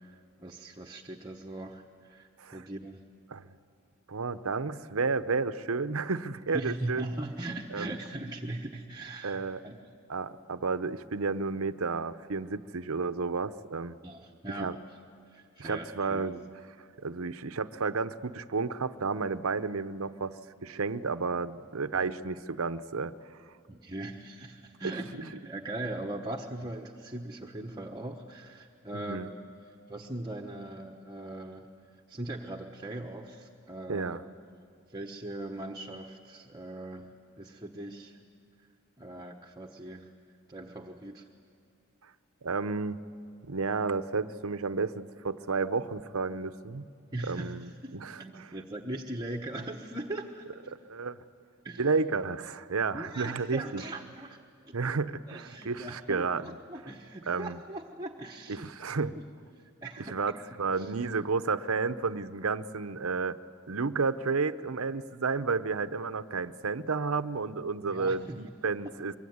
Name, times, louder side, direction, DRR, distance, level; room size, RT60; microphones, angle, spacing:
voice 1, 0.0-3.0 6.5-9.8 14.0-14.7 15.3-16.4 21.9-22.2 23.7-31.7 32.1-34.2 34.9-38.2 39.0-40.1 40.5-41.3 47.1-50.7 51.6-51.9 52.9-54.4 54.7-54.8 55.3-58.9 59.6-60.2 60.7-60.9 67.9-68.4, right 1 dB, 20° right, 2 dB, 1.2 m, -40 dB
voice 2, 4.1-7.1 7.7-7.9 9.2-9.6 10.1-14.0 14.6-14.8 15.6-16.4 17.0-20.4 20.6-23.1 28.9-29.3 33.9-34.2 42.4-43.0 43.5-46.9 47.2-48.5 50.7-51.2 51.8-53.8 54.7-56.4 57.3-57.6 58.5-59.2 60.1-60.3 60.6-63.4 63.7-69.1, right 4 dB, 75° right, 12 dB, 0.8 m, -31 dB
25.5 x 23.0 x 9.6 m, 2.4 s
head